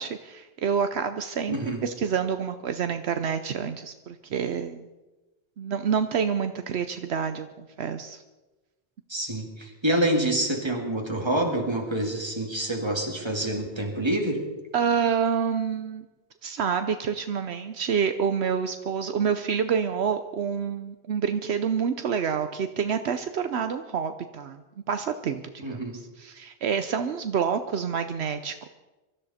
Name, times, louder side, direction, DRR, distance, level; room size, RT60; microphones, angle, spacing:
voice 1, 0.0-4.9 5.6-8.2 14.7-16.1 16.4-24.6 24.9-28.7, right 7 dB, 75° right, 8 dB, 1.0 m, -28 dB
voice 2, 1.5-1.8 9.1-14.4 25.6-26.0, right 1 dB, 25° right, 2 dB, 2.3 m, -27 dB
23.5 x 13.5 x 4.3 m, 1.1 s
omnidirectional pair, 1.1 m